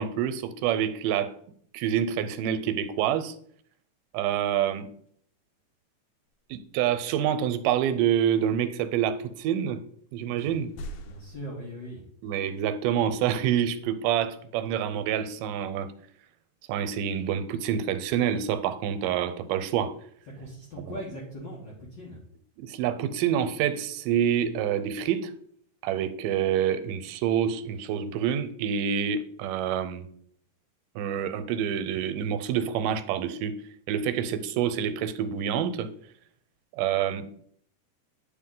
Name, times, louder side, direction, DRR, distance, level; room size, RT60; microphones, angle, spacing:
voice 1, 0.0-1.3 1.7-3.4 4.1-4.9 6.5-9.8 10.1-10.7 12.2-15.9 16.7-20.0 20.8-21.0 22.6-25.3 25.8-30.1 31.0-33.6 33.9-35.9 36.7-37.3, right 9 dB, 90° right, 2.2 m, -27 dB
voice 2, 10.2-10.5 11.1-12.0 20.4-22.2, equal, 65° left, 1.1 m, -40 dB
sound 1, 10.4-11.5, equal, 80° left, 2.1 m, -41 dB
9.0 x 4.1 x 3.8 m
omnidirectional pair, 3.7 m